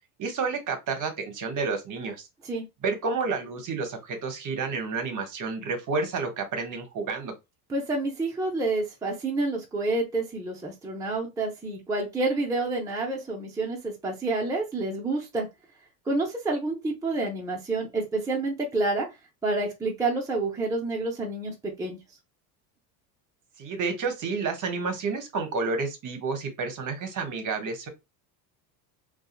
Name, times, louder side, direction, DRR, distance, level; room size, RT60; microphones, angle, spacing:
voice 1, 0.2-2.2 2.8-7.3 23.6-27.9, right 4 dB, 40° right, 0.9 m, -30 dB
voice 2, 7.7-15.5 16.1-19.1 19.4-22.0, right 2 dB, 5° right, 0.6 m, -28 dB
2.6 x 2.4 x 2.4 m
supercardioid pair, 85°, 49 cm